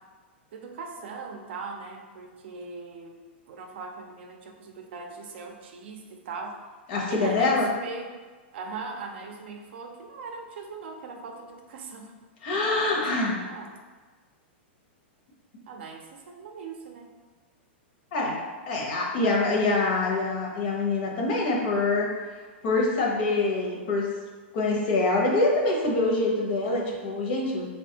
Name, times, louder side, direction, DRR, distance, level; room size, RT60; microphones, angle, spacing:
voice 1, 0.5-3.2 3.5-6.6 7.1-8.1 8.5-12.1 12.7-13.7 15.7-17.1, right 4 dB, 65° right, 3 dB, 0.5 m, -40 dB
voice 2, 6.9-7.7 12.4-13.4 18.1-18.4 18.7-22.1 22.6-24.1 24.5-27.7, left 2 dB, 50° left, -2 dB, 0.8 m, -25 dB
3.4 x 2.3 x 2.8 m, 1.4 s
supercardioid pair, 150°, 6 cm